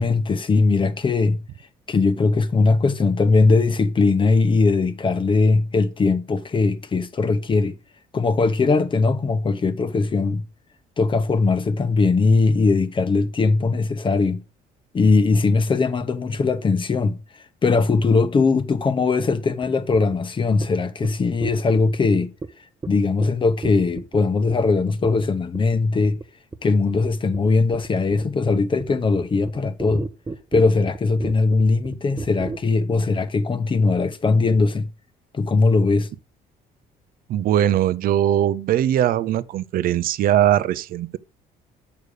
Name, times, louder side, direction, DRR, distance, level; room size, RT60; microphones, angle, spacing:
voice 1, 0.0-1.4 1.9-7.7 8.1-10.4 11.0-14.4 14.9-17.2 17.6-22.3 22.9-26.2 26.6-30.1 30.5-34.9 35.3-36.1, left 4 dB, 30° left, 0.9 m, -20 dB
sound 1, 19.6-19.7 19.9-20.2 20.6-20.7 21.0-21.1 21.4-22.0 22.4-22.5 22.8-22.9 23.2-23.3 23.6-24.2 24.5-24.7 25.0-25.3 25.5-25.8 26.0-26.3 26.5-32.6, right 3 dB, 20° right, 0.7 m, -33 dB
voice 2, 37.3-41.2, right 11 dB, 60° right, 0.5 m, -20 dB
6.6 x 5.1 x 6.6 m
cardioid pair, 110°, 17 cm